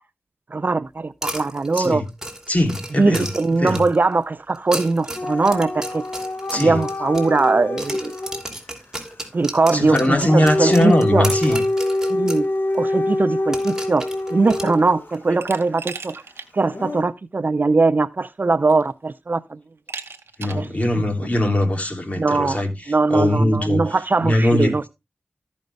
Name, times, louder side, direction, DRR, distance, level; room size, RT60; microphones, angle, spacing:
voice 1, 0.5-2.0 3.0-6.1 6.5-8.2 9.3-11.3 12.1-12.5 12.7-16.2 16.5-19.6 20.6-20.7 22.2-22.6 22.9-24.9, right 3 dB, 50° right, 0.5 m, -20 dB
sound 1, 1.2-4.0 4.6-7.5 7.8-12.5 12.7-12.8 13.5-15.2, right 1 dB, 10° right, 3.0 m, -33 dB
voice 2, 1.7-2.1 2.5-3.9 6.5-6.9 9.7-11.6 20.4-24.9, left 1 dB, 35° left, 3.0 m, -21 dB
Dog / Siren, 5.2-8.4 9.9-15.1 16.7-17.0, left 1 dB, 55° left, 1.2 m, -25 dB
Glass, 15.4-16.5 16.9-17.0 18.1-18.2 18.7-19.1 19.9-20.7, right 4 dB, 90° right, 0.9 m, -36 dB
14.5 x 5.3 x 3.3 m
cardioid pair, 40°, 4 cm